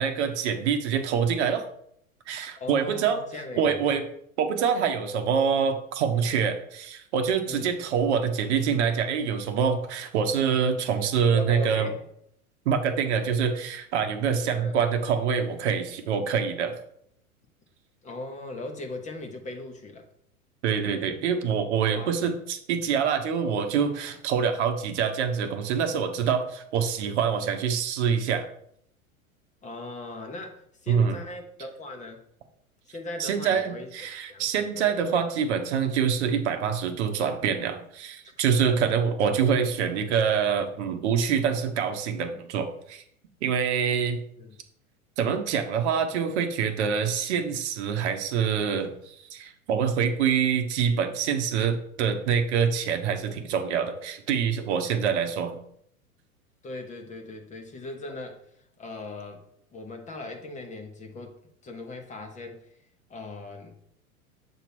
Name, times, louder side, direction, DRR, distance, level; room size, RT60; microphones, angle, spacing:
voice 1, 0.0-1.6 2.3-3.2 3.6-4.0 4.4-11.9 12.7-16.8 20.6-28.4 30.9-31.2 33.2-43.0 43.4-44.2 45.2-55.6, right 7 dB, 50° right, 6 dB, 1.0 m, -25 dB
voice 2, 2.6-3.8 7.5-7.7 11.3-12.0 14.5-14.8 18.0-20.1 21.9-22.1 29.6-32.2 32.9-33.9 34.3-34.8 38.2-38.9 44.4-44.6 56.6-58.5 58.8-62.7 63.1-63.8, left 2 dB, 15° left, 4 dB, 1.0 m, -39 dB
7.3 x 3.0 x 5.9 m, 0.68 s
figure-of-eight pair, 95°, 43 cm